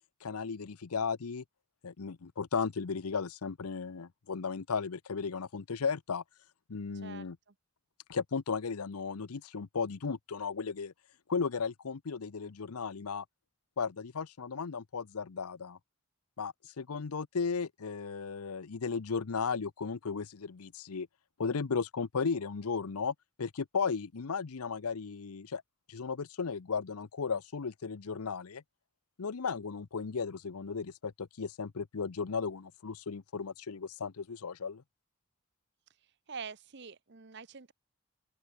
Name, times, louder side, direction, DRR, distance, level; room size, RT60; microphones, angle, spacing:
voice 1, 0.2-1.4 1.8-6.2 6.7-7.4 8.1-10.9 11.3-13.2 13.8-15.8 16.4-21.1 21.4-25.6 25.9-28.6 29.2-34.8, left 5 dB, 85° left, 0.7 m, -35 dB
voice 2, 6.9-7.5 36.3-37.7, right 5 dB, 50° right, 0.9 m, -45 dB
open air
head